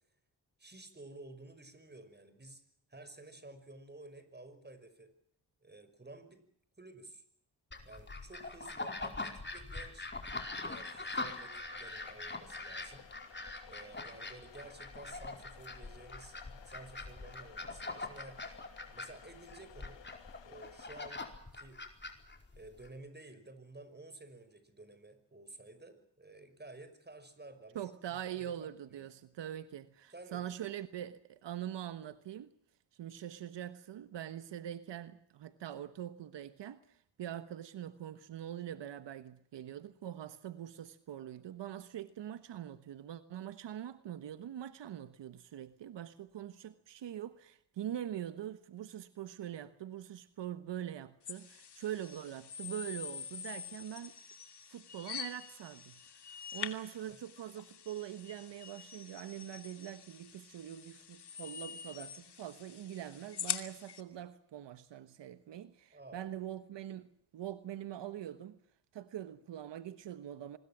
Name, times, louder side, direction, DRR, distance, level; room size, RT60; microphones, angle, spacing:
voice 1, 0.6-2.6 2.9-5.1 5.6-6.4 6.8-7.2 7.9-10.1 10.6-13.1 13.7-16.4 16.7-18.5 18.9-20.0 20.4-21.2 21.6-21.8 22.6-29.1 30.1-30.5 57.1-57.2 65.9-66.3, right 2 dB, 25° right, 5.7 m, -53 dB
sound 1, 7.7-22.9, left 3 dB, 25° left, 4.7 m, -43 dB
sound 2, 10.3-21.1, left 9 dB, 90° left, 2.0 m, -57 dB
voice 2, 27.7-32.5 33.0-54.1 54.7-68.6 68.9-70.6, right 11 dB, 90° right, 1.3 m, -43 dB
sound 3, 51.2-64.0, left 8 dB, 70° left, 2.6 m, -45 dB
25.5 x 21.0 x 7.5 m
cardioid pair, 75°, 42 cm